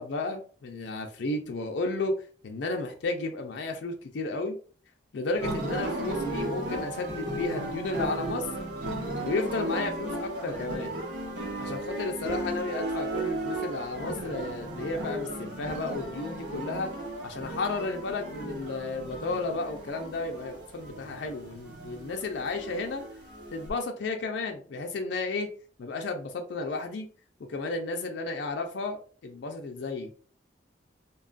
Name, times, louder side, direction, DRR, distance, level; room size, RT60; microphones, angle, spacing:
voice 1, 0.0-2.1 2.4-4.6 5.1-8.5 9.2-11.0 11.6-16.9 17.2-23.0 23.5-25.5 25.8-27.1 27.5-30.1, left 3 dB, 80° left, 3 dB, 0.4 m, -33 dB
sound 1, 5.4-23.7, right 1 dB, 85° right, 1.0 m, -35 dB
2.8 x 2.3 x 2.4 m, 0.42 s
head